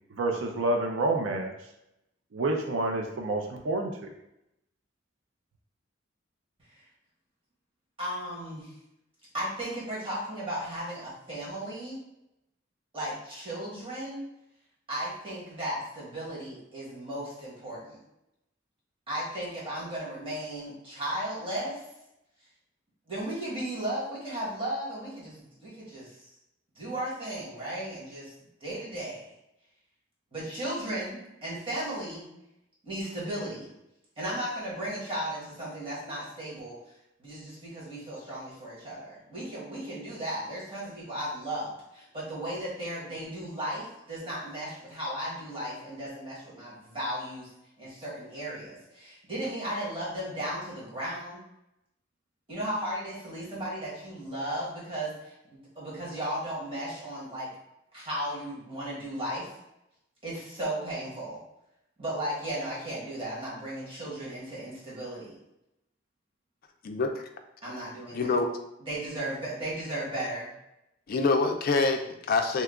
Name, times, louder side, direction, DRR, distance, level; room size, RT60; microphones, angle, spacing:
voice 1, 0.1-1.7 2.3-4.0, right 2 dB, 85° right, 3 dB, 0.4 m, -28 dB
voice 2, 8.0-8.7 9.3-12.0 12.9-14.2 14.9-18.0 19.1-21.8 23.1-26.3 26.7-28.3 28.6-29.3 30.3-32.3 32.8-33.7 34.2-36.8 37.2-47.5 47.8-51.4 52.5-57.5 57.9-59.5 60.2-61.4 62.0-65.4 67.6-68.3 68.9-70.5, right 1 dB, 30° right, -7 dB, 1.3 m, -35 dB
voice 3, 66.8-67.2 68.1-68.5 71.1-72.6, left 3 dB, 50° left, 6 dB, 0.4 m, -26 dB
2.8 x 2.3 x 3.5 m, 0.86 s
head